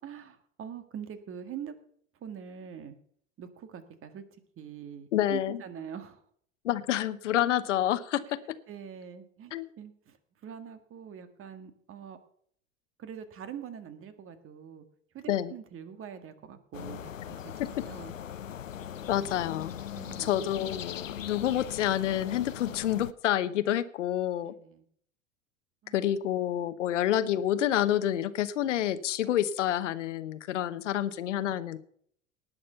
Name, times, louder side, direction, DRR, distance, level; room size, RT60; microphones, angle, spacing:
voice 1, 0.0-1.7 2.2-3.0 3.4-4.2 4.6-6.2 8.7-10.2 10.4-12.2 13.0-14.9 15.1-17.4 17.9-18.1 20.0-20.3 24.4-24.9 25.8-26.0, right 8 dB, 35° right, 9 dB, 1.9 m, -44 dB
voice 2, 5.1-5.6 6.6-8.4 9.5-9.7 15.3-15.5 17.6-17.7 19.1-19.7 20.2-24.5 25.9-31.8, left 11 dB, 70° left, 13 dB, 1.1 m, -28 dB
sound 1, 16.7-23.1, left 10 dB, 90° left, 0.6 m, -40 dB
18.5 x 6.5 x 5.6 m, 0.62 s
hypercardioid pair, 85°, 38 cm